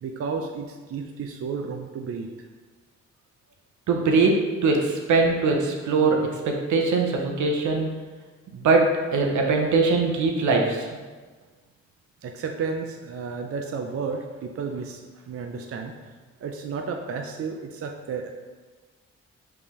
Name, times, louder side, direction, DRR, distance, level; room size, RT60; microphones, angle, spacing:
voice 1, 0.0-2.3 12.2-15.9 16.4-18.3, right 5 dB, 50° right, 3 dB, 0.5 m, -32 dB
voice 2, 3.9-7.9 8.5-10.9, right 3 dB, 80° right, 1 dB, 0.8 m, -22 dB
5.1 x 3.4 x 3.0 m, 1.3 s
cardioid pair, 60°, 30 cm